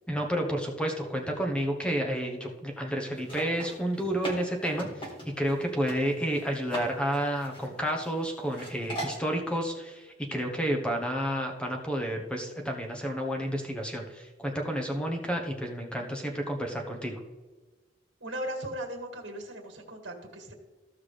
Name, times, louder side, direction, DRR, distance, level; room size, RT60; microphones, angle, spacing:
voice 1, 0.1-5.1 5.4-17.2, equal, 5° left, 2 dB, 1.0 m, -30 dB
sound 1, 3.2-5.6 5.9-6.0 6.3-6.9 7.1-8.2 8.5-9.2, right 1 dB, 30° left, 2.0 m, -38 dB
voice 2, 18.2-20.5, right 1 dB, 75° right, 3 dB, 1.9 m, -37 dB
14.5 x 5.8 x 3.3 m, 1.3 s
head